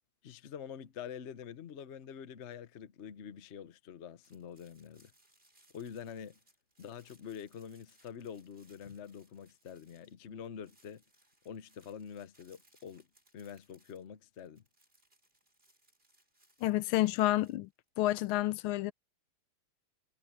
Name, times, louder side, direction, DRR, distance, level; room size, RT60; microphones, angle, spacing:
voice 1, 0.2-5.1 5.7-6.4 6.8-11.0 11.4-13.1 13.3-14.6, left 8 dB, 50° left, 0.9 m, -46 dB
sound 1, 4.2-10.3 10.6-18.1, right 1 dB, 25° right, 7.0 m, -69 dB
voice 2, 16.6-17.7 18.0-18.9, left 16 dB, 80° left, 1.4 m, -29 dB
omnidirectional pair, 2.4 m